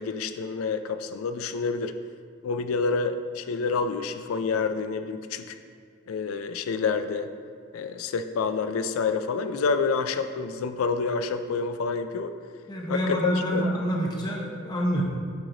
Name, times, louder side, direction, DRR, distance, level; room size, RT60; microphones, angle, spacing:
voice 1, 0.0-1.9 2.4-5.6 6.1-7.3 7.7-12.3 12.9-13.6, left 4 dB, 85° left, 9 dB, 0.4 m, -28 dB
voice 2, 12.7-15.0, equal, 20° left, -1 dB, 0.7 m, -27 dB
8.7 x 3.1 x 3.8 m, 2.2 s
head